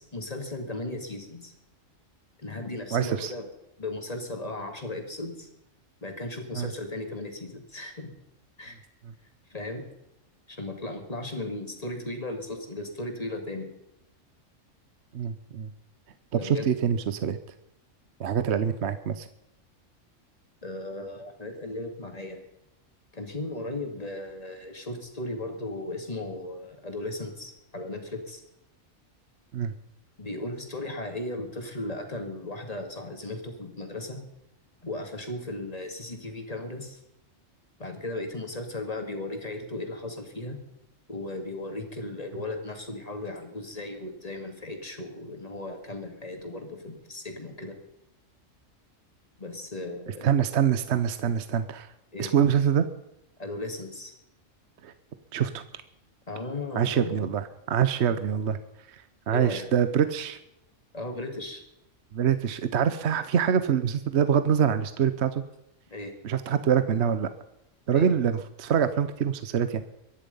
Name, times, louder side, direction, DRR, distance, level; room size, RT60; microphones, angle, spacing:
voice 1, 0.0-1.5 2.4-3.4 3.8-5.5 6.0-8.1 8.6-8.8 9.5-9.8 10.5-13.7 16.3-16.7 20.6-22.4 23.1-28.4 30.2-34.2 34.8-37.0 37.8-40.6 41.1-47.8 49.4-50.3 52.1-52.3 53.4-54.1 56.3-57.3 59.3-59.7 60.9-61.6 65.9-66.1 67.9-68.1, left 2 dB, 30° left, 4 dB, 2.6 m, -36 dB
voice 2, 2.9-3.3 6.5-6.7 15.1-15.7 16.4-17.4 18.2-19.3 29.5-29.7 50.2-51.9 52.2-52.9 54.8-54.9 55.3-55.6 56.8-58.6 58.9-60.4 62.1-65.4 66.2-67.3 67.9-69.8, right 8 dB, 60° right, 11 dB, 1.1 m, -25 dB
23.5 x 10.5 x 5.5 m, 0.88 s
omnidirectional pair, 1.3 m